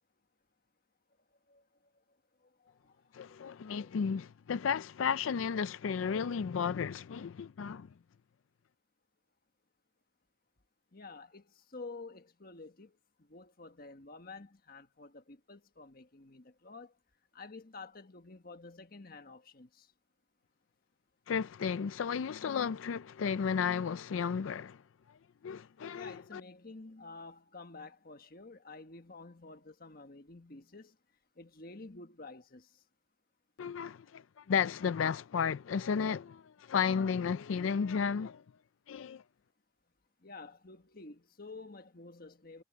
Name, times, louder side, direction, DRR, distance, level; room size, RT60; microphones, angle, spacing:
voice 1, 3.1-7.9 21.3-24.8 25.4-26.4 33.6-38.4 38.9-39.2, left 6 dB, 90° left, 0.4 m, -33 dB
voice 2, 10.9-12.9 13.3-16.9 17.3-19.9 25.9-30.9 31.4-32.7 40.2-42.6, left 3 dB, 50° left, 1.5 m, -50 dB
head